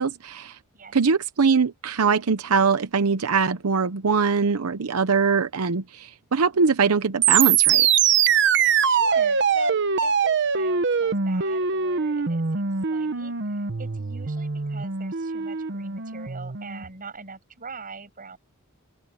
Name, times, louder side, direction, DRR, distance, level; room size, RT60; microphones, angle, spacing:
voice 1, 0.0-0.6 0.9-7.9, right 5 dB, 85° right, 0.8 m, -22 dB
sound 1, 7.2-16.9, right 7 dB, 55° right, 1.0 m, -23 dB
voice 2, 8.6-18.4, right 4 dB, 40° right, 7.8 m, -42 dB
open air
head